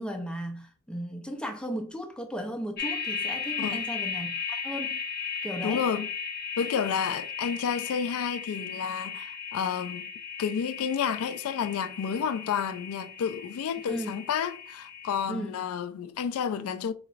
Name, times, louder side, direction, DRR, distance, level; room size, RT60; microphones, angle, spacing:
voice 1, 0.0-5.0 5.4-5.8 13.9-14.2 15.3-15.7, equal, 5° left, 0.5 m, -36 dB
sound 1, 2.8-15.3, left 6 dB, 45° left, 0.8 m, -36 dB
voice 2, 5.6-6.1 6.6-10.1 10.4-16.9, left 7 dB, 80° left, 0.3 m, -30 dB
4.7 x 3.1 x 2.4 m
head